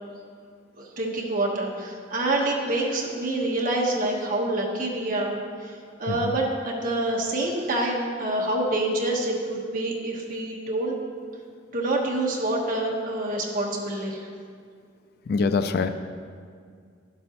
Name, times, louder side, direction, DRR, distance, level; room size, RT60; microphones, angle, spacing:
voice 1, 0.8-10.9 11.7-14.3, right 2 dB, 45° right, -2 dB, 1.2 m, -27 dB
voice 2, 15.3-15.9, left 4 dB, 50° left, 10 dB, 0.3 m, -23 dB
11.5 x 7.4 x 3.0 m, 2.2 s
head